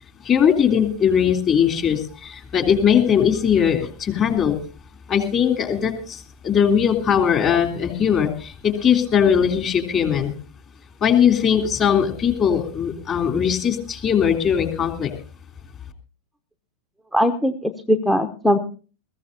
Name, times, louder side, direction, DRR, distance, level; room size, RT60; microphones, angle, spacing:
voice 1, 0.2-4.6 5.1-10.3 11.0-15.1, left 8 dB, 30° left, 4 dB, 3.1 m, -20 dB
voice 2, 17.1-18.6, equal, 5° left, 6 dB, 0.9 m, -20 dB
21.5 x 15.0 x 2.8 m, 0.38 s
figure-of-eight pair, 90°, 0 cm